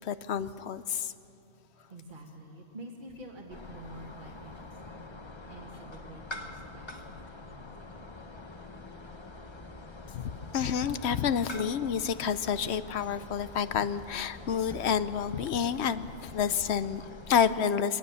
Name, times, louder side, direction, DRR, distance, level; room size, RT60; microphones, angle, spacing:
voice 1, 0.0-1.1 10.1-18.0, left 7 dB, 70° left, 13 dB, 0.9 m, -29 dB
voice 2, 0.9-8.3, right 1 dB, 45° right, -1 dB, 1.8 m, -49 dB
sound 1, 3.5-17.4, left 2 dB, 25° left, 0.9 m, -45 dB
23.0 x 19.0 x 7.0 m, 2.7 s
omnidirectional pair, 1.2 m